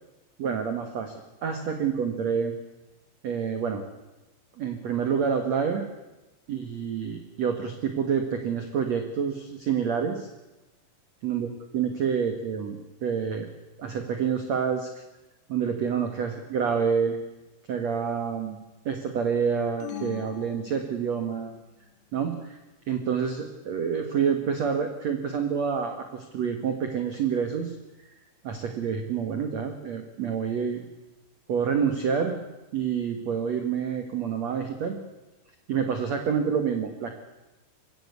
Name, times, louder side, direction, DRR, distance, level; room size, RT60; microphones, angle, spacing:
voice 1, 0.4-1.1 1.4-2.5 3.2-3.8 4.6-5.9 6.5-10.3 11.2-13.5 13.8-14.9 15.5-17.2 17.7-18.6 18.8-21.5 22.1-22.6 22.9-27.7 28.4-30.8 31.5-32.4 32.7-35.0 35.7-37.2, right 7 dB, 80° right, 6 dB, 1.5 m, -28 dB
sound 1, 19.8-21.5, left 10 dB, 75° left, 1.7 m, -41 dB
22.0 x 16.5 x 8.3 m, 1.0 s
omnidirectional pair, 5.6 m